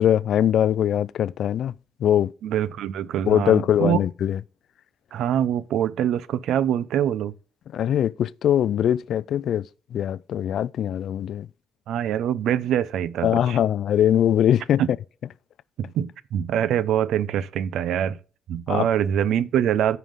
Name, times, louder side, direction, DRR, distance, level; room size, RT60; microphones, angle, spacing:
voice 1, 0.0-1.7 2.0-2.3 3.3-4.4 7.7-11.5 13.2-14.8 18.7-18.9, left 10 dB, 70° left, 0.3 m, -22 dB
voice 2, 2.4-4.0 5.1-7.3 11.9-13.6 14.8-14.9 15.8-18.2 18.5-20.0, right 10 dB, 80° right, 0.6 m, -24 dB
14.5 x 5.7 x 3.6 m
cardioid pair, 120°, 0 cm